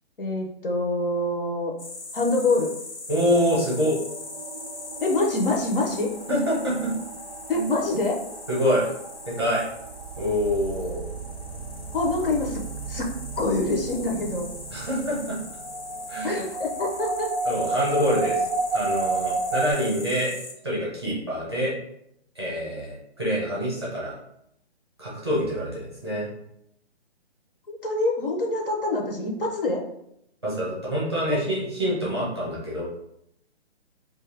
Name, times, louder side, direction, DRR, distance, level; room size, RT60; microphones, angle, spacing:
voice 1, 0.2-1.7 2.1-2.7 5.0-6.1 7.5-8.2 11.9-12.6 12.9-13.1 13.4-14.5 16.2-17.3 27.7-29.8 31.3-31.4, left 2 dB, 55° left, 0 dB, 0.6 m, -25 dB
sound 1, 1.8-20.5, left 3 dB, 75° left, 0.9 m, -41 dB
voice 2, 3.1-4.0 6.3-6.9 7.5-7.7 8.5-8.9 9.3-9.6 10.2-11.0 14.7-15.4 16.1-16.4 17.4-18.5 18.7-20.3 20.6-21.7 22.3-24.1 25.0-26.3 30.4-32.8, equal, 25° right, -7 dB, 0.6 m, -26 dB
sound 2, 3.3-19.7, right 3 dB, 65° right, 0.5 m, -33 dB
2.5 x 2.3 x 3.3 m, 0.78 s
hypercardioid pair, 180°, 34 cm